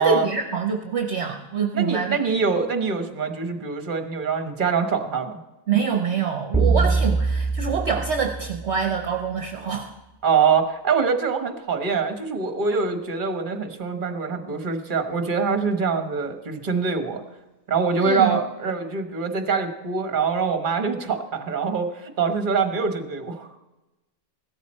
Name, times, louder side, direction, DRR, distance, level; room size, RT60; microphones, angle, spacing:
voice 1, 0.0-2.2 5.7-9.9 18.0-18.4, right 6 dB, 55° right, 4 dB, 1.1 m, -25 dB
voice 2, 1.7-5.4 10.2-17.2 17.7-23.5, right 5 dB, 40° right, 7 dB, 1.3 m, -24 dB
sound 1, 6.5-9.0, right 4 dB, 10° right, 0.3 m, -23 dB
16.0 x 13.0 x 4.3 m, 1.0 s
omnidirectional pair, 1.5 m